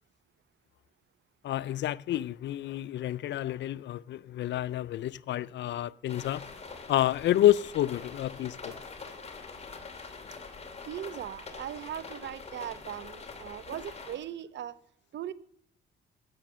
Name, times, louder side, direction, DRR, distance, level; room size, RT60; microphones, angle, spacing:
voice 1, 1.4-6.5 6.9-8.8, left 13 dB, 65° left, 0.4 m, -29 dB
sound 1, 6.1-14.2, left 4 dB, 30° left, 2.5 m, -44 dB
voice 2, 10.9-14.8 15.1-15.3, right 10 dB, 65° right, 0.8 m, -39 dB
15.0 x 7.3 x 6.8 m
cardioid pair, 90°, 20 cm